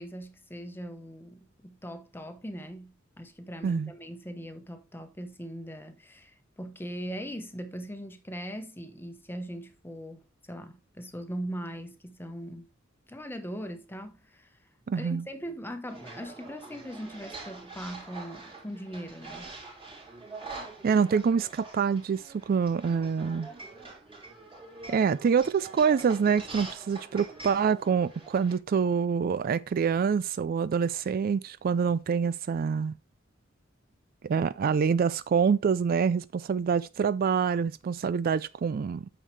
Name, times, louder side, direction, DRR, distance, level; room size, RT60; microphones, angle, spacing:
voice 1, 0.0-12.7 13.1-14.6 14.9-19.5, equal, 10° left, 1.1 m, -40 dB
voice 2, 14.9-15.2 20.8-23.5 24.9-32.9 34.2-39.1, right 6 dB, 45° right, 0.3 m, -26 dB
sound 1, 15.9-28.5, right 3 dB, 30° right, 3.1 m, -45 dB
8.9 x 6.6 x 3.2 m
head